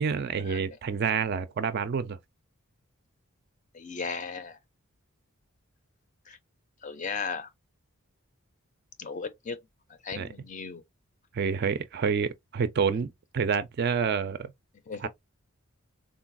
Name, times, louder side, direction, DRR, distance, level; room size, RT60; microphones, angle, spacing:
voice 1, 0.0-2.2 10.2-10.3 11.3-14.5 15.0-15.1, right 6 dB, 45° right, 0.3 m, -28 dB
voice 2, 3.7-4.6 6.3-6.4 6.8-7.5 9.0-9.6 10.0-10.8 14.9-15.1, left 5 dB, 35° left, 0.4 m, -36 dB
3.8 x 2.2 x 2.5 m
head